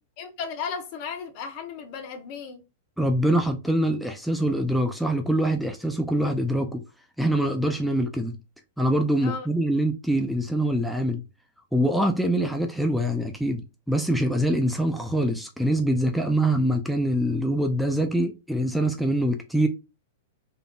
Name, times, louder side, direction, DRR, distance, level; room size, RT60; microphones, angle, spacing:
voice 1, 0.2-2.6 9.2-9.5, left 6 dB, 45° left, 1.1 m, -35 dB
voice 2, 3.0-6.8 7.2-8.4 8.8-11.2 11.7-13.6 13.9-19.7, right 1 dB, ahead, 0.6 m, -24 dB
3.8 x 3.4 x 2.4 m
figure-of-eight pair, 100°, 0 cm